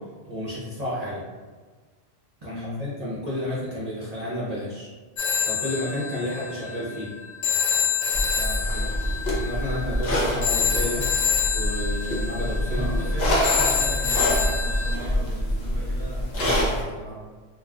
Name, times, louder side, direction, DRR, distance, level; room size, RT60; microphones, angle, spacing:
voice 1, 0.3-1.2 2.4-4.9 5.4-7.1 9.2-11.0 11.5-13.0 16.4-16.6, left 1 dB, 45° right, -9 dB, 0.6 m, -31 dB
voice 2, 2.4-2.9 8.3-9.0 12.7-17.2, equal, 30° left, -9 dB, 0.7 m, -37 dB
Telephone, 5.2-15.0, left 6 dB, 85° left, 0.9 m, -27 dB
sound 1, 8.1-16.8, equal, 60° left, 0.9 m, -26 dB
2.3 x 2.2 x 3.5 m, 1.4 s
omnidirectional pair, 1.1 m